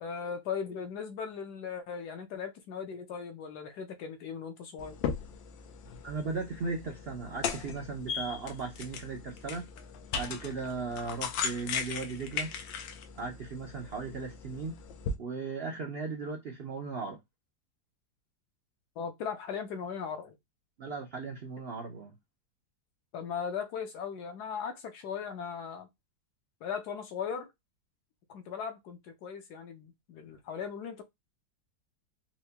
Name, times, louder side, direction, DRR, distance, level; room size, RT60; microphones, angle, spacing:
voice 1, 0.0-5.0 19.0-20.4 23.1-25.9 26.6-27.5 28.3-31.0, left 6 dB, 70° left, 1.1 m, -38 dB
sound 1, 4.8-15.2, left 6 dB, 90° left, 1.4 m, -38 dB
voice 2, 6.0-9.7 10.2-12.5 13.2-14.8 15.2-17.2 20.8-22.1, right 4 dB, 80° right, 0.5 m, -37 dB
4.4 x 2.1 x 2.8 m
omnidirectional pair, 2.0 m